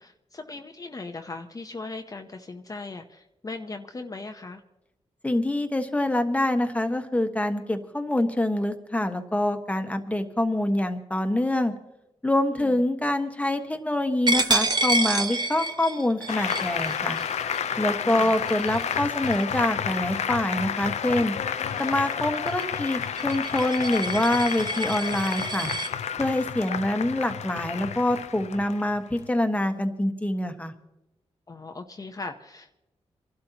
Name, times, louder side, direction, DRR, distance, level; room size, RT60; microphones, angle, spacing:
voice 1, 0.0-4.6 12.5-12.8 31.5-32.7, left 3 dB, 30° left, 5 dB, 0.8 m, -39 dB
voice 2, 5.2-11.7 12.2-17.2 17.8-21.3 21.8-25.7 26.2-30.7, left 1 dB, 10° left, 6 dB, 1.3 m, -25 dB
Coin (dropping), 14.3-19.7 20.1-20.4 20.8-25.9, right 2 dB, 40° right, 1.1 m, -29 dB
Applause, 16.3-29.3, left 8 dB, 80° left, 0.6 m, -30 dB
27.5 x 12.0 x 2.9 m, 0.93 s
wide cardioid pair, 95°, 12 cm